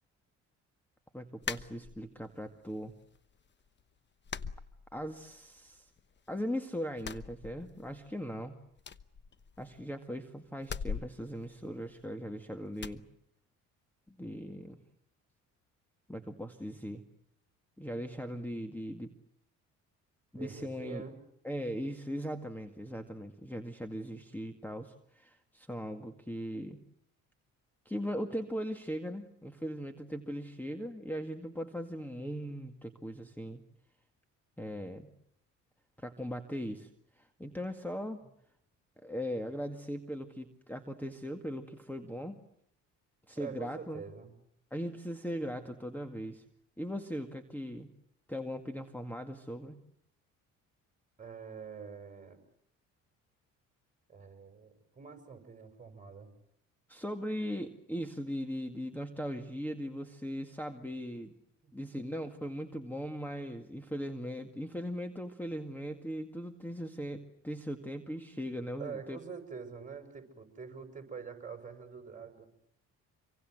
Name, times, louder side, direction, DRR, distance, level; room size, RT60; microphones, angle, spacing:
voice 1, 1.1-2.9 4.9-5.9 6.3-8.6 9.6-13.0 14.1-14.8 16.1-17.0 17.8-19.1 20.3-21.0 21.4-26.8 27.9-33.6 34.6-35.1 36.0-36.9 37.2-38.2 39.0-42.4 43.3-44.0 44.7-46.4 46.8-47.9 48.3-49.8 56.9-61.3 61.7-69.2, equal, 5° left, 7 dB, 2.1 m, -39 dB
sound 1, 1.4-2.3 2.7-3.4 3.7-3.8 4.2-5.4 5.7-6.5 6.9-8.1 8.3-8.4 8.8-9.9 10.6-12.3 12.8-13.0, left 6 dB, 35° left, 1.1 m, -42 dB
voice 2, 20.3-21.2 43.4-44.3 51.2-52.4 54.1-56.3 61.6-61.7 68.8-72.5, right 6 dB, 25° right, 7 dB, 6.7 m, -45 dB
26.5 x 24.0 x 7.9 m, 0.73 s
cardioid pair, 80°, 33 cm